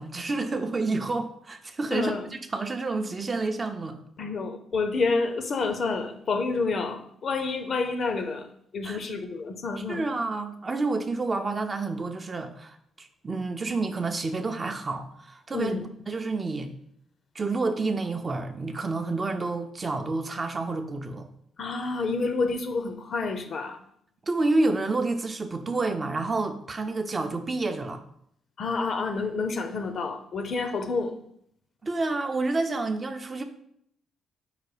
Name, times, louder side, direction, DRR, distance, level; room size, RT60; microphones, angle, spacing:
voice 1, 0.0-4.0 8.8-9.0 9.8-15.8 16.1-16.7 17.3-21.3 24.3-28.0 31.8-33.4, right 3 dB, 30° right, 6 dB, 0.5 m, -29 dB
voice 2, 1.9-2.2 4.2-8.5 8.7-10.0 15.5-15.8 21.6-23.8 28.6-31.1, left 4 dB, 50° left, 7 dB, 0.5 m, -29 dB
4.8 x 2.2 x 4.8 m, 0.67 s
cardioid pair, 90°, 0 cm